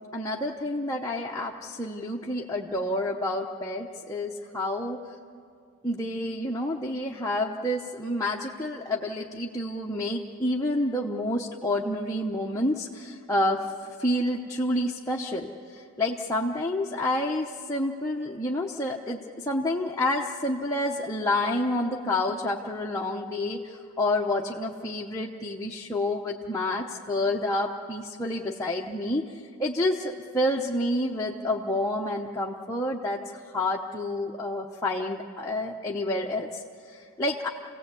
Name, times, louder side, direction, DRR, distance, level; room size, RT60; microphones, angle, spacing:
voice 1, 0.1-5.0 5.8-13.6 14.0-33.2 33.5-37.5, left 1 dB, 15° left, -3 dB, 0.9 m, -29 dB
28.0 x 17.0 x 8.3 m, 2.3 s
head